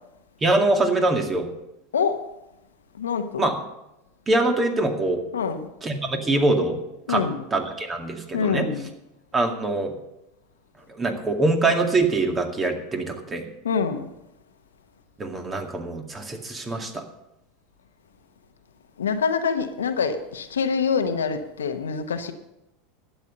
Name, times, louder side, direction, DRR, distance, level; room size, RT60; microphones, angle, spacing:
voice 1, 0.4-1.5 3.4-3.6 4.3-5.2 5.8-6.8 7.1-7.2 7.5-8.7 9.3-9.9 10.9-13.4 15.2-17.0, right 2 dB, 25° right, 2.2 m, -23 dB
voice 2, 3.0-3.4 5.3-5.7 7.1-7.4 8.3-8.9 13.6-14.1 19.0-22.3, left 6 dB, 85° left, 1.1 m, -25 dB
12.0 x 8.6 x 6.7 m
hypercardioid pair, 90°, 0 cm